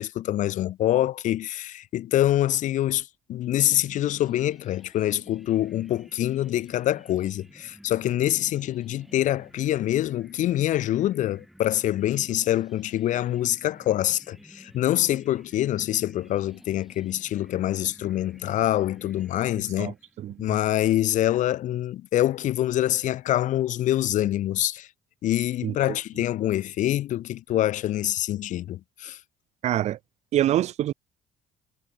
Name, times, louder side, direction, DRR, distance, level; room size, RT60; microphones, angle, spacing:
voice 1, 0.0-19.9 20.4-24.9 25.2-29.2, left 13 dB, 65° left, 1.5 m, -25 dB
crazy scale, 3.7-20.3, equal, ahead, 3.7 m, -53 dB
voice 2, 19.8-20.5 25.6-25.7 29.6-30.0 30.3-30.9, right 12 dB, 55° right, 0.5 m, -25 dB
cardioid pair, 95°, 14 cm